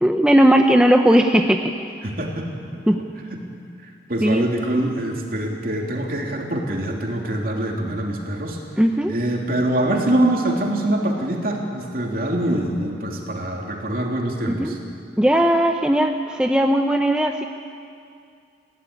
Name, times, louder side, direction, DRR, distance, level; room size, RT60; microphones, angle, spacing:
voice 1, 0.0-1.7 2.9-3.0 4.2-4.4 8.8-9.1 14.5-14.7 15.2-17.4, equal, 5° right, 4 dB, 0.7 m, -17 dB
voice 2, 2.0-2.5 3.3-3.4 3.8-8.6 9.1-14.8, right 1 dB, 50° right, 0 dB, 3.2 m, -24 dB
22.0 x 16.0 x 9.9 m, 2.4 s
head